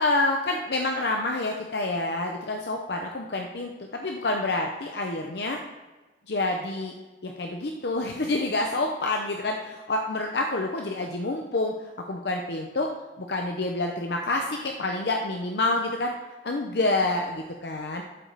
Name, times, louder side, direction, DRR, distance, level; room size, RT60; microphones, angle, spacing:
voice 1, 0.0-5.6 6.3-6.9 7.2-12.9 13.2-16.1 16.4-18.0, left 2 dB, 65° left, 2 dB, 0.7 m, -28 dB
12.0 x 4.7 x 4.0 m, 1.2 s
head